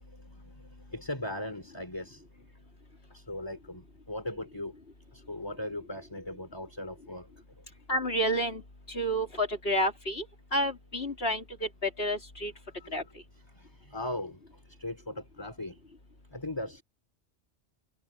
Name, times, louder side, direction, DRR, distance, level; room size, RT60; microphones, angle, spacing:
voice 1, 0.9-2.2 3.1-4.7 5.1-7.3 12.8-13.1 13.6-14.4 14.8-15.8 16.3-16.8, left 1 dB, 20° left, 3.7 m, -38 dB
voice 2, 7.9-8.6 8.9-10.3 10.5-12.5 12.9-13.0, equal, 60° left, 4.0 m, -30 dB
omnidirectional pair, 1.1 m